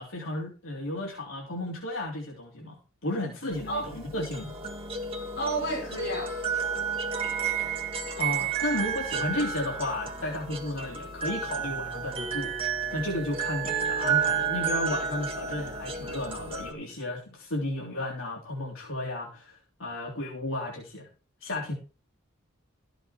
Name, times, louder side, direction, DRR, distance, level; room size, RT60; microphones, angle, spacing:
voice 1, 0.0-4.6 8.2-12.5 12.9-21.1 21.4-21.7, left 1 dB, 75° left, 3.5 m, -33 dB
sound 1, 3.5-16.7, right 6 dB, 30° right, 2.5 m, -31 dB
voice 2, 5.4-6.3, right 2 dB, 55° left, 5.0 m, -31 dB
14.5 x 7.7 x 4.5 m
head